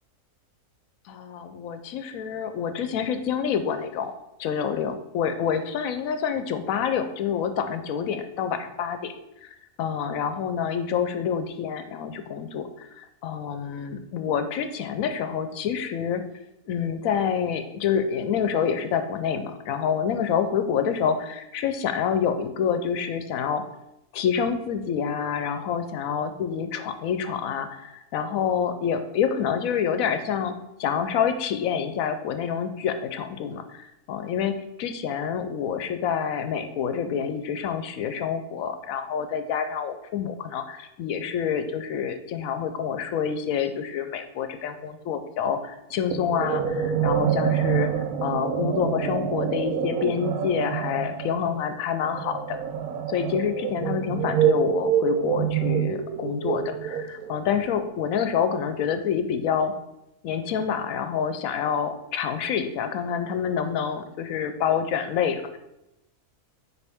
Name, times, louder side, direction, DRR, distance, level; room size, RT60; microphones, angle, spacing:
voice 1, 1.1-4.1 4.4-9.1 9.4-9.5 9.8-16.2 16.7-23.6 24.1-47.9 48.2-52.6 53.1-59.7 60.2-65.6, left 7 dB, 70° left, 9 dB, 1.0 m, -27 dB
sound 1, 46.1-57.4, right 9 dB, 75° right, 1.1 m, -26 dB
7.0 x 4.5 x 3.5 m, 0.88 s
omnidirectional pair, 1.6 m